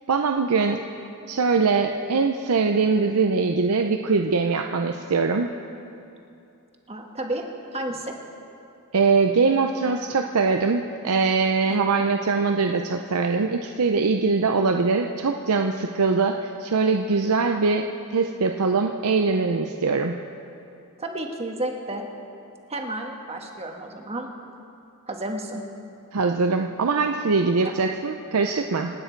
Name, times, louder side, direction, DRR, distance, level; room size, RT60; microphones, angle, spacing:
voice 1, 0.1-0.8 1.3-5.5 8.9-17.9 18.1-20.1 26.1-28.9, right 4 dB, 80° right, 4 dB, 0.6 m, -22 dB
voice 2, 6.9-7.4 7.7-8.1 11.7-12.0 21.0-22.0 22.7-24.3 25.1-25.6, right 1 dB, 30° right, 2 dB, 1.3 m, -31 dB
27.5 x 9.3 x 4.5 m, 2.6 s
head